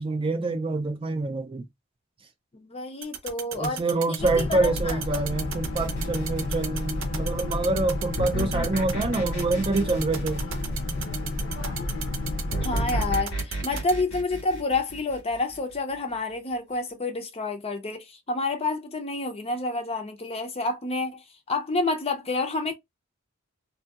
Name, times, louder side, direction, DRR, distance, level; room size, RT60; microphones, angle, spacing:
voice 1, 0.0-1.7 3.5-10.4, right 2 dB, 25° right, 0.4 m, -26 dB
voice 2, 2.5-3.8 4.1-5.0 12.6-21.2 21.5-22.7, left 3 dB, 30° left, 0.5 m, -29 dB
sound 1, 3.0-13.9, right 9 dB, 65° right, 0.6 m, -34 dB
Boat Water vehicle, 4.2-13.2, left 2 dB, 70° left, 0.8 m, -31 dB
sound 2, 5.8-7.0 8.2-11.2 12.5-15.7, right 1 dB, 85° left, 1.4 m, -33 dB
2.7 x 2.6 x 2.3 m
head